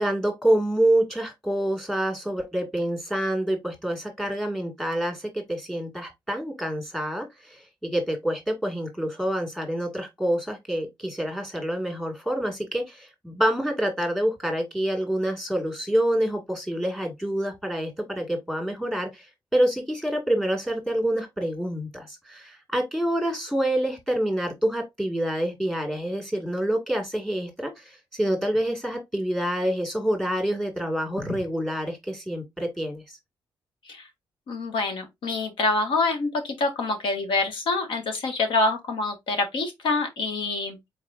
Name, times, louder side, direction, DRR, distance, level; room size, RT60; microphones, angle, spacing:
voice 1, 0.0-19.3 19.5-33.2, right 1 dB, 5° left, 2.1 m, -27 dB
voice 2, 34.5-40.8, left 3 dB, 80° left, 1.6 m, -26 dB
4.9 x 4.2 x 2.5 m
cardioid pair, 120°, 8 cm